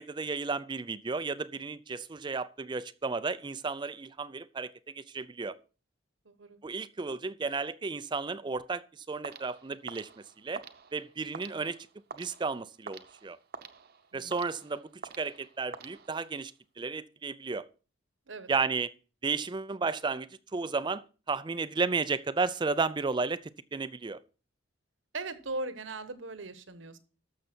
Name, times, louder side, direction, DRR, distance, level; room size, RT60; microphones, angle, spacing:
voice 1, 0.0-5.6 6.6-10.1 10.4-10.6 10.9-11.8 12.1-13.4 14.1-14.9 15.2-16.5 16.8-17.7 18.5-18.9 19.2-23.4 23.7-24.2, right 4 dB, 25° right, 0.4 m, -33 dB
voice 2, 6.2-6.6 14.1-14.4 18.3-18.5 25.1-27.0, right 2 dB, 70° right, 1.2 m, -39 dB
sound 1, 9.2-16.5, right 5 dB, 50° right, 0.9 m, -48 dB
13.0 x 6.7 x 4.4 m
head